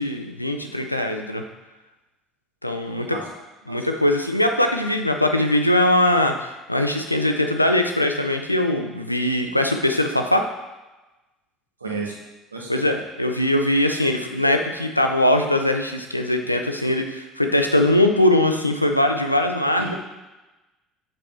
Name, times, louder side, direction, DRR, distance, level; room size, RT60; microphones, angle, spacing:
voice 1, 0.0-1.4 2.6-3.2 3.7-10.4 12.7-20.0, left 1 dB, 90° left, 4 dB, 0.4 m, -21 dB
voice 2, 11.8-12.1 12.5-12.8 19.8-20.0, right 4 dB, 80° right, -1 dB, 0.9 m, -31 dB
6.5 x 4.3 x 3.5 m, 1.1 s
figure-of-eight pair, 60°, 0 cm